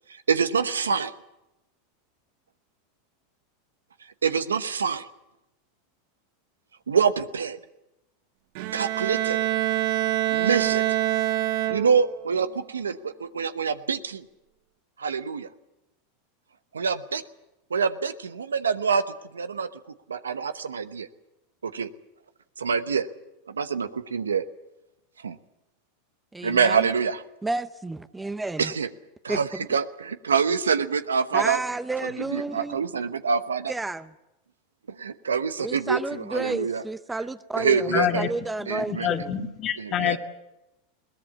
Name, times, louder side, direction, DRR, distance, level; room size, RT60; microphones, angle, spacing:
voice 1, 0.3-1.1 4.2-5.1 6.9-7.6 8.7-9.4 10.3-10.8 11.7-14.2 15.0-15.5 16.7-17.2 17.7-19.0 19.3-19.7 20.1-21.1 21.6-21.9 22.6-23.1 23.5-24.5 25.2-25.4 26.4-27.2 28.6-28.9 29.2-29.9 30.2-31.6 32.0-33.7 34.9-36.8 37.6-38.3 38.7-39.1 39.8-40.2, right 6 dB, 90° right, 0.9 m, -25 dB
Bowed string instrument, 8.5-12.2, right 15 dB, 60° right, 0.8 m, -25 dB
voice 2, 26.3-26.9 27.4-28.7 29.3-29.4 31.3-32.8 33.7-34.1 35.6-39.3, right 2 dB, 10° right, 0.7 m, -31 dB
voice 3, 37.9-38.3 38.9-40.2, left 10 dB, 40° left, 1.8 m, -26 dB
21.0 x 18.0 x 8.5 m
hypercardioid pair, 95°, 0 cm